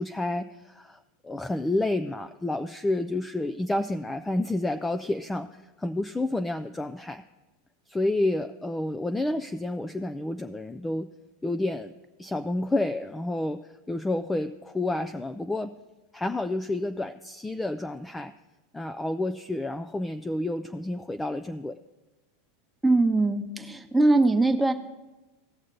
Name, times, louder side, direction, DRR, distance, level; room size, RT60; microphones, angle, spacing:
voice 1, 0.0-7.2 7.9-11.1 11.4-11.9 12.2-13.6 13.9-15.7 16.1-18.3 18.7-21.8, left 2 dB, 10° left, 8 dB, 0.4 m, -29 dB
voice 2, 22.8-24.7, right 2 dB, 5° right, 5 dB, 1.0 m, -21 dB
17.5 x 6.3 x 3.9 m, 1.1 s
hypercardioid pair, 110°, 0 cm